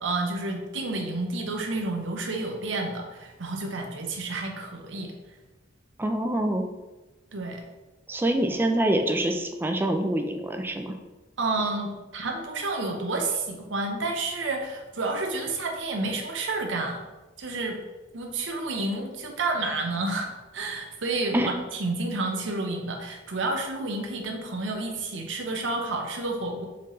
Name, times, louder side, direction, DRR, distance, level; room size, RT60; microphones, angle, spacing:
voice 1, 0.0-5.1 7.3-7.6 11.4-17.0 17.4-17.8 18.1-26.7, right 2 dB, 85° right, 3 dB, 0.8 m, -30 dB
voice 2, 6.0-6.7 8.1-10.9 21.3-21.5, right 1 dB, 10° right, 5 dB, 0.4 m, -25 dB
4.4 x 3.9 x 3.1 m, 1.1 s
head